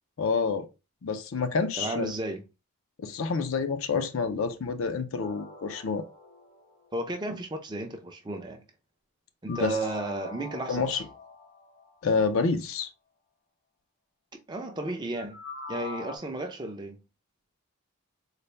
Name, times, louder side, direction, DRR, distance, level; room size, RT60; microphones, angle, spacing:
voice 1, 0.2-0.7 1.0-2.1 3.0-6.0 9.5-9.7 10.7-11.0 12.0-12.9, left 4 dB, 65° left, 0.5 m, -28 dB
voice 2, 1.8-2.4 6.9-8.7 9.4-11.0 14.3-15.4 15.7-17.0, right 2 dB, 20° right, 0.5 m, -33 dB
sound 1, 5.2-7.3 9.5-12.1 15.1-16.2, left 3 dB, 85° left, 2.2 m, -44 dB
3.9 x 2.1 x 3.2 m
head